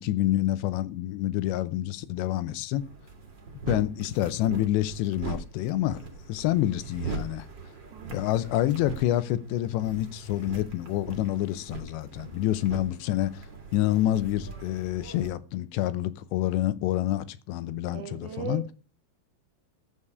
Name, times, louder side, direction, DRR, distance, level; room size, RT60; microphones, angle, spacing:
voice 1, 0.0-2.8 3.7-7.5 8.1-13.4 13.7-18.6, left 14 dB, 80° left, 2.8 m, -27 dB
sound 1, 2.7-15.3, right 4 dB, 35° right, 2.2 m, -41 dB
voice 2, 7.9-8.4 17.9-18.7, right 8 dB, 70° right, 1.8 m, -38 dB
13.0 x 8.3 x 4.8 m
omnidirectional pair, 5.4 m